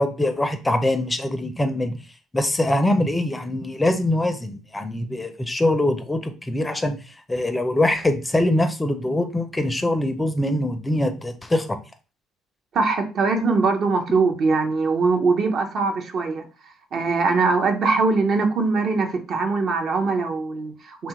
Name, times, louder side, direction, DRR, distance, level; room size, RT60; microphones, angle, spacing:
voice 1, 0.0-2.0 2.3-7.0 7.3-11.8, left 1 dB, 15° left, 7 dB, 0.4 m, -23 dB
voice 2, 12.7-16.4 16.9-21.1, right 4 dB, 55° right, 4 dB, 0.6 m, -22 dB
2.9 x 2.3 x 2.8 m, 0.34 s
hypercardioid pair, 65°, 0 cm